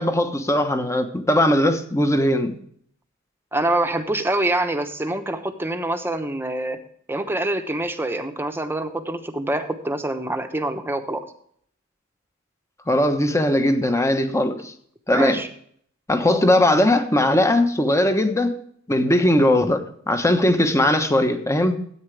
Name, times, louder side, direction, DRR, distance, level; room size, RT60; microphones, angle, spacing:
voice 1, 0.0-2.5 12.9-14.7 15.1-15.4 16.1-18.6 18.9-21.8, left 1 dB, 15° left, 1.1 m, -19 dB
voice 2, 3.5-6.8 7.1-11.3 15.1-15.5, right 1 dB, 10° right, 1.0 m, -25 dB
13.5 x 8.8 x 3.4 m
head